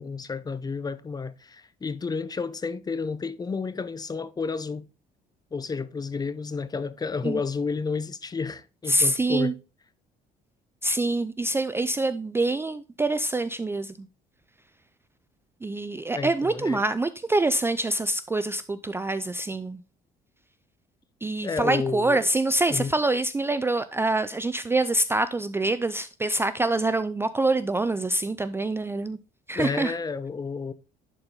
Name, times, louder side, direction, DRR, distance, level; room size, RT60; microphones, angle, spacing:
voice 1, 0.0-4.9 5.5-9.5 16.1-16.8 21.4-22.3 22.7-22.9 29.5-30.7, left 4 dB, 25° left, 0.7 m, -31 dB
voice 2, 8.9-9.5 10.8-14.1 15.6-19.8 21.2-29.2 29.5-29.9, right 2 dB, 15° right, 0.4 m, -25 dB
11.0 x 4.3 x 3.8 m
cardioid pair, 110°, 17 cm